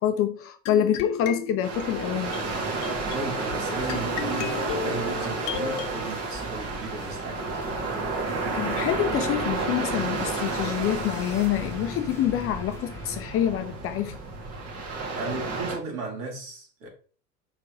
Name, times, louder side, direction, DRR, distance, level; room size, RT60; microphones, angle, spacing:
voice 1, 0.0-2.4 8.6-14.2, left 10 dB, 30° left, 0.6 m, -26 dB
sound 1, 0.7-5.9, left 8 dB, 50° left, 1.0 m, -35 dB
sound 2, 1.6-15.8, right 3 dB, 30° right, 1.8 m, -31 dB
sound 3, 2.4-13.3, left 1 dB, 5° left, 1.5 m, -43 dB
voice 2, 3.1-7.7 15.1-16.9, right 4 dB, 70° right, 3.7 m, -36 dB
5.4 x 4.6 x 4.8 m
hypercardioid pair, 90°, 50 cm